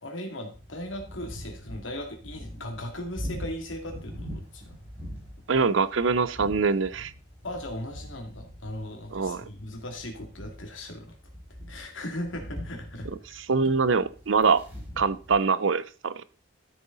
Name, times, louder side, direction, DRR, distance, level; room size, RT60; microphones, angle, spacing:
voice 1, 0.0-4.7 7.4-11.2 11.7-13.4, left 1 dB, 80° left, 4 dB, 2.5 m, -38 dB
sound 1, 0.5-15.4, equal, 10° right, 5.3 m, -43 dB
voice 2, 5.5-7.1 9.1-9.5 13.4-14.6 15.0-16.2, right 4 dB, 75° right, 16 dB, 0.6 m, -24 dB
13.0 x 6.9 x 4.0 m, 0.38 s
head